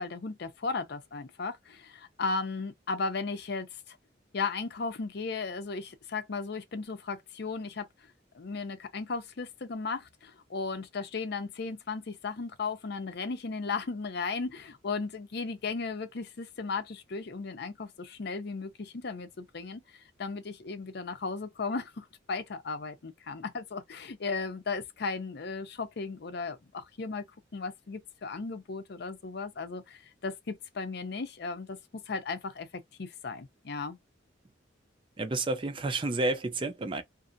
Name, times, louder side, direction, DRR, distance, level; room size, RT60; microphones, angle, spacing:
voice 1, 0.0-4.0 4.3-7.9 8.3-19.8 20.2-27.3 27.5-32.7 33.0-34.0, left 4 dB, 60° left, 0.6 m, -36 dB
voice 2, 35.2-37.0, right 2 dB, 25° right, 0.4 m, -30 dB
2.6 x 2.5 x 2.6 m
head